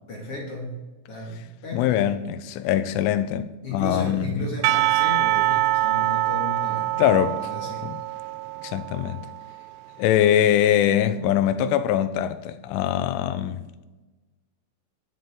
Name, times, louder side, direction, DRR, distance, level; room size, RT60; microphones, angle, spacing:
voice 1, 0.1-2.0 3.6-7.9, left 2 dB, 40° left, 2.4 m, -34 dB
voice 2, 1.7-4.5 7.0-7.4 7.8-8.0 8.6-9.2 10.0-13.6, left 10 dB, 85° left, 3.1 m, -22 dB
Percussion / Church bell, 4.6-9.7, right 16 dB, 85° right, 2.9 m, -24 dB
23.0 x 8.1 x 3.8 m
omnidirectional pair, 5.6 m